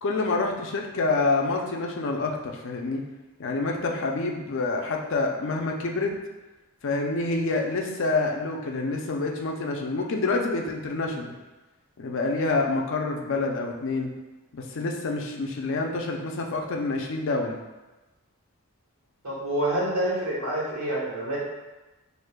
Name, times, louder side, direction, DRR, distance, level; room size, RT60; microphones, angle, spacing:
voice 1, 0.0-3.0 3.4-6.2 6.8-11.3 12.0-14.1 14.5-17.6, left 3 dB, 60° left, 1 dB, 0.5 m, -27 dB
voice 2, 19.2-21.4, right 1 dB, 85° right, -5 dB, 1.4 m, -27 dB
6.3 x 2.6 x 2.2 m, 1.1 s
head